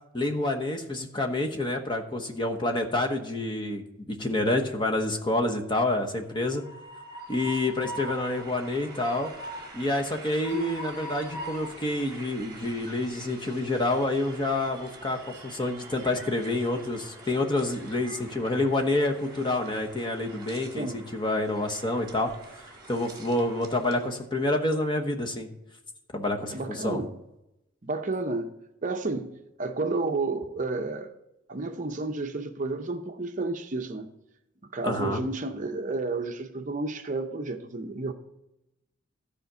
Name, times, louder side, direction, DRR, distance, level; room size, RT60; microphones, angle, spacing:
voice 1, 0.1-6.6 7.3-9.3 9.7-22.3 22.6-25.5 26.1-27.0 34.8-35.2, left 2 dB, 20° left, 1.0 m, -28 dB
Train, 6.3-24.1, right 1 dB, 20° right, 1.7 m, -44 dB
voice 2, 26.5-27.1 27.8-28.5 28.8-31.1 31.5-34.1 34.7-38.1, right 3 dB, 40° right, 0.6 m, -31 dB
13.0 x 5.0 x 6.8 m
head